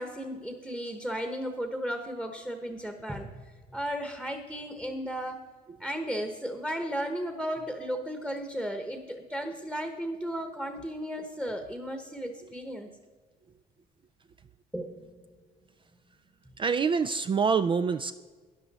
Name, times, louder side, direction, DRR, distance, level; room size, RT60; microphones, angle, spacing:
voice 1, 0.0-3.3 3.7-5.5 5.8-12.9 14.7-15.3, equal, 5° right, 5 dB, 1.1 m, -35 dB
voice 2, 16.6-18.1, right 5 dB, 30° right, 11 dB, 0.4 m, -26 dB
13.0 x 10.0 x 4.2 m, 1.4 s
cardioid pair, 110°, 17 cm